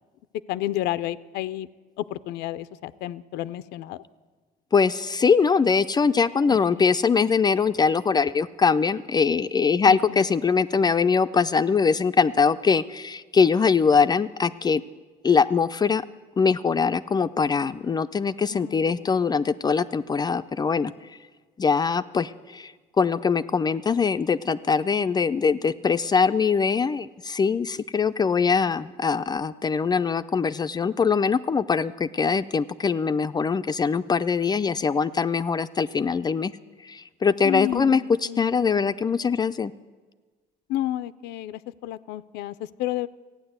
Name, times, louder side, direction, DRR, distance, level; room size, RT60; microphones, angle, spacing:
voice 1, 0.5-1.7 2.0-4.0 6.5-6.9 9.8-10.6 18.5-19.1 37.4-38.9 40.7-43.1, left 14 dB, 85° left, 15 dB, 0.5 m, -31 dB
voice 2, 4.7-14.8 15.2-16.0 16.4-20.9 21.6-36.5 36.8-39.7, left 5 dB, 25° left, 12 dB, 0.4 m, -22 dB
14.5 x 9.4 x 8.0 m, 1.3 s
cardioid pair, 110°, 17 cm